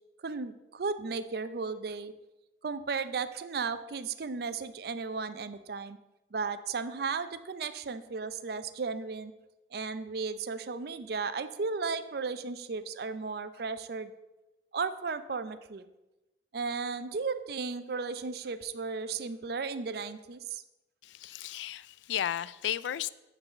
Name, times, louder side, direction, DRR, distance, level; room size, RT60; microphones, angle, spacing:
voice 1, 0.2-2.1 2.6-6.0 6.3-9.3 9.7-14.1 14.7-15.9 16.5-20.6, right 4 dB, 60° right, 0.5 m, -35 dB
voice 2, 21.0-23.1, left 10 dB, 85° left, 0.3 m, -34 dB
8.8 x 4.0 x 7.2 m
head